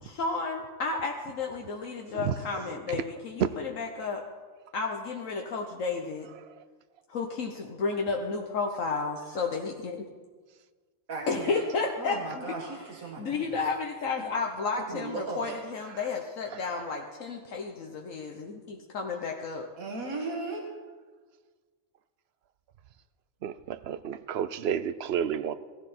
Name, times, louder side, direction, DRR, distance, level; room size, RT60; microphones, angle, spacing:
voice 1, 0.0-4.2 4.7-6.3 7.1-10.0 11.3-12.4 13.2-19.7, left 4 dB, 75° left, 1.4 m, -32 dB
voice 2, 11.1-11.6 12.0-13.5 14.2-14.3 14.7-15.6 19.8-20.6, right 3 dB, 90° right, 2.2 m, -36 dB
voice 3, 23.4-25.6, right 8 dB, 60° right, 0.7 m, -31 dB
17.0 x 14.5 x 4.3 m
omnidirectional pair, 1.4 m